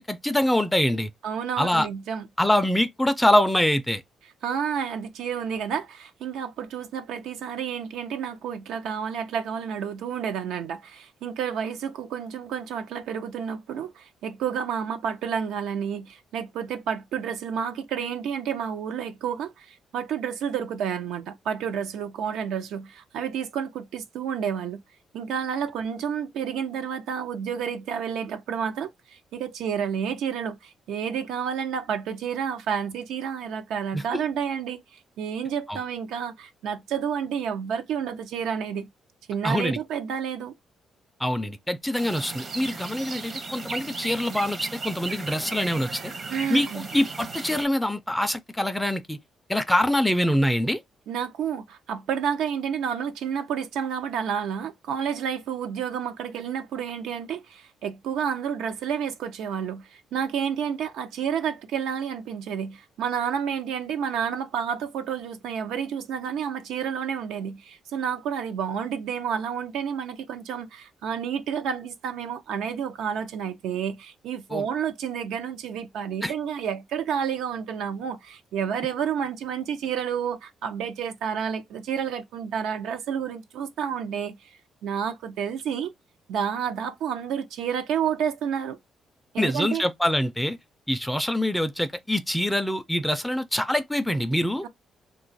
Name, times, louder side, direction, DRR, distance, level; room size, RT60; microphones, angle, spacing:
voice 1, 0.0-1.1 1.6-1.9 2.4-4.0 33.9-34.2 35.7-35.8 39.4-39.8 41.2-46.1 46.5-49.2 49.5-50.8 74.5-74.6 76.2-76.3 89.4-90.6 90.9-94.7, left 1 dB, 5° left, 0.4 m, -24 dB
voice 2, 1.2-2.3 4.4-24.8 25.1-38.9 39.3-40.5 46.3-46.9 51.1-84.5 84.8-85.9 86.3-88.8 89.3-89.9 94.6-94.7, right 7 dB, 85° right, 0.5 m, -30 dB
sound 1, 42.0-47.6, right 4 dB, 40° right, 0.7 m, -36 dB
2.8 x 2.3 x 3.9 m
cardioid pair, 90°, 0 cm